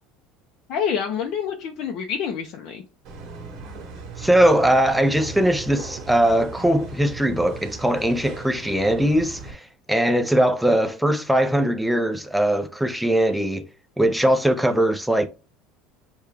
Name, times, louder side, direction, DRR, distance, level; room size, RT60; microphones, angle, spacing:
voice 1, 0.7-2.8, left 7 dB, 50° left, 0.6 m, -27 dB
Step in Hardfloor, 3.0-9.5, right 4 dB, 45° right, 1.7 m, -38 dB
voice 2, 4.2-13.7 14.0-15.3, right 1 dB, ahead, 0.4 m, -20 dB
6.6 x 2.3 x 3.2 m
cardioid pair, 165°, 0 cm